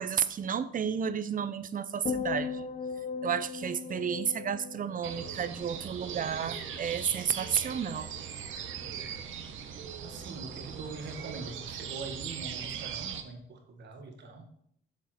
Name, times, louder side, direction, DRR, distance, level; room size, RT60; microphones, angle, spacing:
voice 1, 0.0-2.7 3.2-8.1, right 7 dB, 45° right, 14 dB, 0.6 m, -32 dB
sound 1, 2.0-6.4 6.7-7.2, left 5 dB, 40° left, 0.9 m, -38 dB
sound 2, 5.0-13.2, right 8 dB, 80° right, 1.0 m, -40 dB
voice 2, 10.0-14.5, right 3 dB, 60° right, 3 dB, 1.9 m, -43 dB
7.2 x 6.9 x 4.4 m, 0.67 s
cardioid pair, 90°, 20 cm